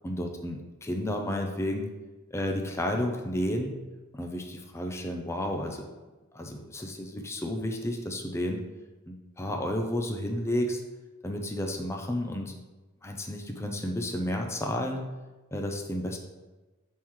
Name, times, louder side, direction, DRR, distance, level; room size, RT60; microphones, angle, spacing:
voice 1, 0.0-1.9 2.3-3.7 4.1-5.9 6.3-8.6 9.1-10.8 11.2-12.5 13.0-15.0 15.5-16.2, left 1 dB, 15° left, 2 dB, 0.5 m, -31 dB
10.5 x 3.8 x 3.1 m, 1.2 s
head